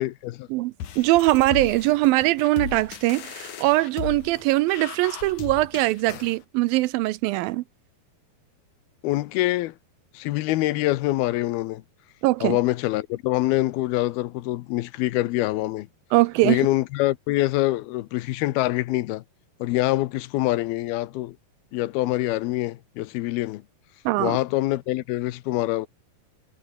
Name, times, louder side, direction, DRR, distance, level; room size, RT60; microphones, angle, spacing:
voice 1, 0.0-0.5 9.0-9.7 10.1-11.8 12.4-15.9 16.4-19.2 19.6-21.4 21.7-23.6 24.2-25.9, left 17 dB, 85° left, 2.7 m, -25 dB
voice 2, 0.5-7.6 12.2-12.6 16.1-16.6 24.1-24.4, right 19 dB, 80° right, 2.2 m, -22 dB
sound 1, 0.8-6.4, left 9 dB, 55° left, 3.2 m, -37 dB
omnidirectional pair, 4.4 m